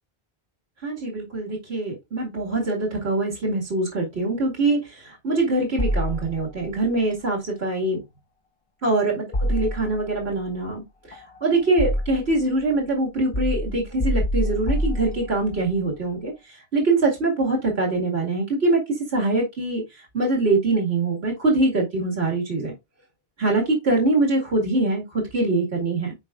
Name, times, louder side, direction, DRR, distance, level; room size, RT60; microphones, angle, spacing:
voice 1, 0.8-8.0 8.8-22.7 23.4-26.1, right 2 dB, 80° right, -1 dB, 2.4 m, -23 dB
sound 1, 5.8-6.7 9.3-10.2 11.1-12.4 13.3-15.6, equal, 35° left, 0.8 m, -26 dB
9.6 x 4.7 x 2.5 m, 0.21 s
omnidirectional pair, 1.0 m